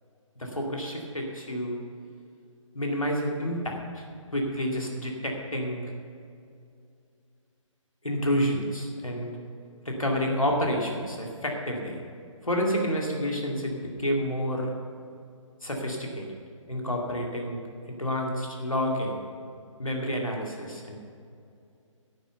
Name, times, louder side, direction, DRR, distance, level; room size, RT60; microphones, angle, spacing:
voice 1, 0.4-1.8 2.7-4.1 4.3-5.9 8.0-9.3 9.8-12.0 12.4-14.7 15.6-16.3 16.7-19.2 19.8-21.0, equal, 80° left, 0 dB, 2.3 m, -29 dB
10.5 x 9.6 x 6.7 m, 2.4 s
figure-of-eight pair, 135°, 17 cm